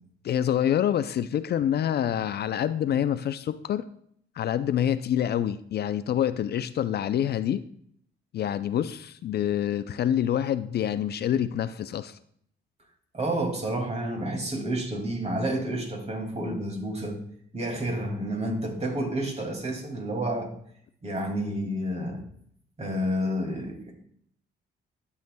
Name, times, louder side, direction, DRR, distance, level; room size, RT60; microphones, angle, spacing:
voice 1, 0.2-3.8 4.4-7.6 8.3-12.2, left 10 dB, 55° left, 13 dB, 0.4 m, -26 dB
voice 2, 13.1-17.2 17.5-20.5 21.0-22.2 22.8-23.9, right 1 dB, 35° right, 2 dB, 2.3 m, -30 dB
12.0 x 7.0 x 2.2 m, 0.66 s
cardioid pair, 90°, 20 cm